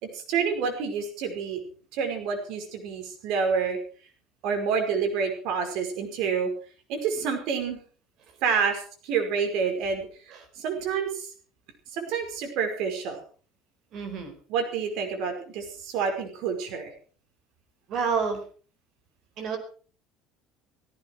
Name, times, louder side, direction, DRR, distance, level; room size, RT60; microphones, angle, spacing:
voice 1, 0.0-1.6 1.9-3.8 4.4-6.5 6.9-7.8 8.4-11.3 11.9-13.2 14.5-16.9, right 6 dB, 60° right, 5 dB, 5.2 m, -28 dB
voice 2, 13.9-14.3 17.9-18.4 19.4-19.6, right 5 dB, 40° right, 6 dB, 4.7 m, -28 dB
17.5 x 16.0 x 4.8 m, 0.41 s
cardioid pair, 175°, 0 cm